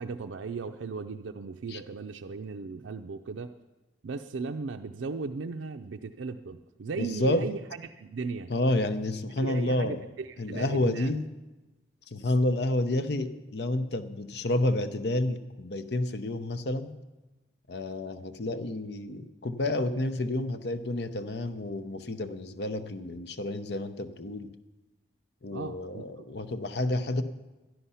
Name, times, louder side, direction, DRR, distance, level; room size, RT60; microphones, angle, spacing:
voice 1, 0.0-3.5 4.0-8.5 9.4-11.1 25.5-26.2, right 4 dB, 85° right, 5 dB, 0.5 m, -37 dB
voice 2, 7.0-7.5 8.5-10.1 10.4-11.3 12.1-16.9 17.7-24.5 25.4-27.2, left 1 dB, 60° left, 11 dB, 0.7 m, -30 dB
12.5 x 11.5 x 5.6 m, 1.1 s
head